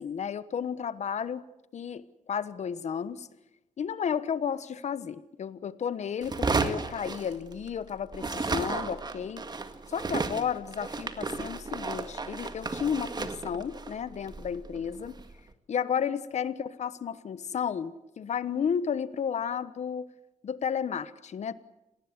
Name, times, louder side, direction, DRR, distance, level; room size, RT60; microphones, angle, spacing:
voice 1, 0.0-1.4 1.7-3.3 3.8-9.4 9.9-15.1 15.7-20.1 20.4-21.5, left 7 dB, 65° left, 15 dB, 1.2 m, -32 dB
sound 1, 6.2-7.8 8.1-15.3, right 3 dB, 35° right, 1.9 m, -33 dB
27.0 x 19.0 x 8.1 m, 0.92 s
cardioid pair, 95°, 13 cm